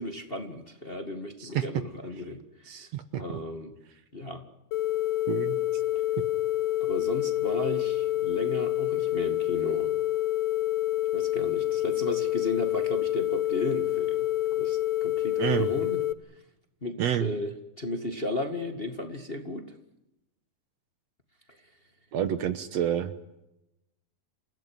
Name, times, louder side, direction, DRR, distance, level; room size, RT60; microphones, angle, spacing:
voice 1, 0.0-2.9 3.2-3.7 4.1-4.4 6.8-9.9 11.1-14.3 14.6-16.0 16.8-19.7, left 1 dB, 20° left, 5 dB, 1.8 m, -35 dB
voice 2, 2.7-3.4 5.3-5.6 15.4-15.7 17.0-17.3 22.1-23.1, right 10 dB, 65° right, 11 dB, 2.1 m, -28 dB
sound 1, 4.7-16.1, left 14 dB, 65° left, 2.0 m, -27 dB
28.5 x 16.5 x 9.4 m, 0.88 s
omnidirectional pair, 3.5 m